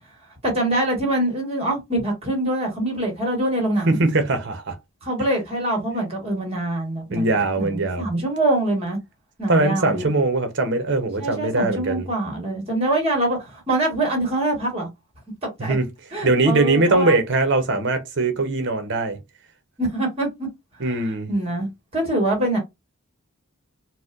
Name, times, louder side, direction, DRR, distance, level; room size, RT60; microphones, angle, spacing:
voice 1, 0.4-4.0 5.0-9.0 9.4-10.1 11.2-14.9 15.4-15.7 16.1-17.2 19.8-20.5 20.8-21.0 21.3-21.7 21.9-22.6, right 1 dB, 25° right, 1.6 m, -24 dB
voice 2, 3.9-4.7 7.1-8.1 9.5-12.1 15.6-15.9 16.2-19.2 20.8-21.3, right 2 dB, 50° right, 0.8 m, -21 dB
4.1 x 2.2 x 2.5 m
head